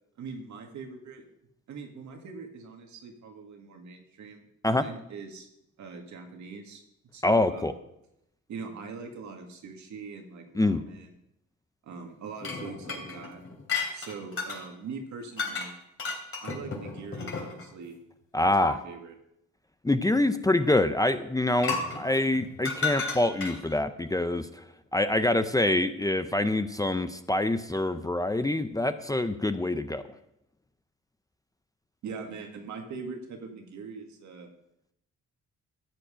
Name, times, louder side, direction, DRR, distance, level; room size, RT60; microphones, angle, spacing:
voice 1, 0.2-1.2 1.7-5.5 5.8-6.8 7.1-7.7 8.5-11.1 11.8-13.4 13.9-15.7 16.4-18.0 18.4-19.1 32.0-34.5, right 5 dB, 70° right, 3 dB, 2.1 m, -42 dB
voice 2, 7.2-7.7 10.5-10.8 18.3-18.8 19.8-24.6 24.9-30.0, left 2 dB, 10° left, 10 dB, 0.6 m, -25 dB
sound 1, 12.4-14.6 15.4-15.7 16.0-17.7 18.6-18.7 21.6-23.7, left 4 dB, 45° left, 3.2 m, -33 dB
13.5 x 7.8 x 5.1 m, 0.81 s
cardioid pair, 90°, 30 cm